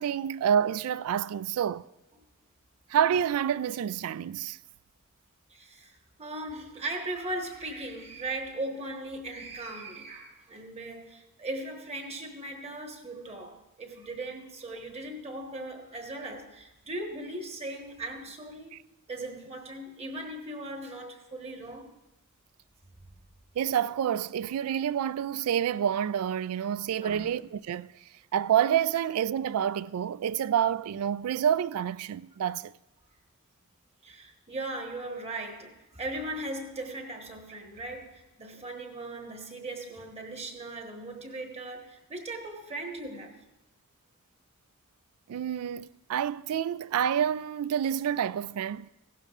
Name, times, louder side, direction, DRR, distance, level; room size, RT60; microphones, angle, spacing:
voice 1, 0.0-1.8 2.9-4.6 23.6-27.9 28.3-32.7 45.3-48.9, right 9 dB, 80° right, 0.3 m, -28 dB
voice 2, 5.5-18.8 19.1-21.9 27.0-27.3 34.0-43.4, right 2 dB, 30° right, 1.3 m, -38 dB
16.0 x 12.0 x 2.5 m
head